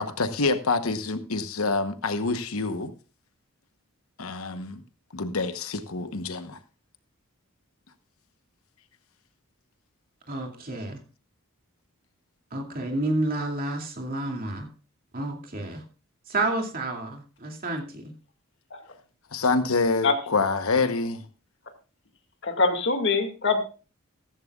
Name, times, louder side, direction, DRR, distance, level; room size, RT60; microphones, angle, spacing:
voice 1, 0.0-2.9 4.2-4.8 5.1-6.6 19.3-21.2, left 3 dB, 75° left, 1.0 m, -26 dB
voice 2, 10.3-11.0 12.5-14.7 15.1-15.8 16.3-18.1, right 2 dB, 40° right, 2.5 m, -30 dB
voice 3, 22.6-23.6, left 4 dB, 55° left, 2.1 m, -22 dB
14.5 x 14.5 x 2.4 m
head